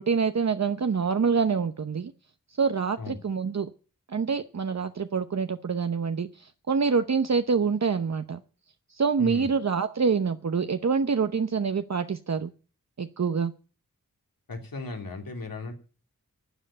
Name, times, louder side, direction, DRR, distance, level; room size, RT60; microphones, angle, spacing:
voice 1, 0.0-2.1 2.6-3.7 4.1-8.4 8.9-12.5 13.0-13.5, right 5 dB, 50° right, 9 dB, 0.8 m, -26 dB
voice 2, 9.2-9.5 14.5-15.7, left 2 dB, 85° left, 3 dB, 3.2 m, -36 dB
12.0 x 7.8 x 8.7 m, 0.37 s
wide cardioid pair, 55°, 34 cm